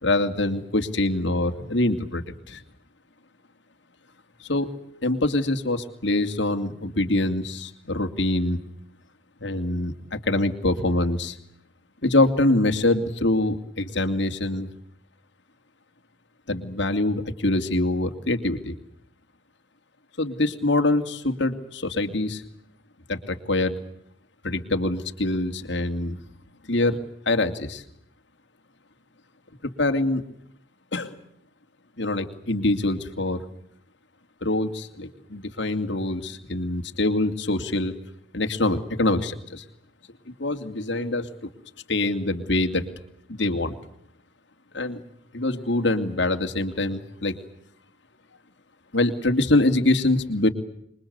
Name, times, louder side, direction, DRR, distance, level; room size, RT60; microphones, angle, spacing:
voice 1, 0.0-2.6 4.4-4.8 5.0-8.6 9.4-11.4 12.0-14.7 16.5-18.7 20.2-22.4 23.1-23.8 24.4-26.2 26.7-27.0 27.3-27.8 29.6-30.2 30.9-31.1 32.0-33.4 34.4-37.9 38.3-39.6 40.3-41.5 41.9-42.8 43.3-43.7 44.7-45.0 45.3-47.3 48.9-50.5, left 2 dB, 60° left, 6 dB, 2.6 m, -24 dB
27.0 x 23.0 x 8.1 m, 0.70 s
head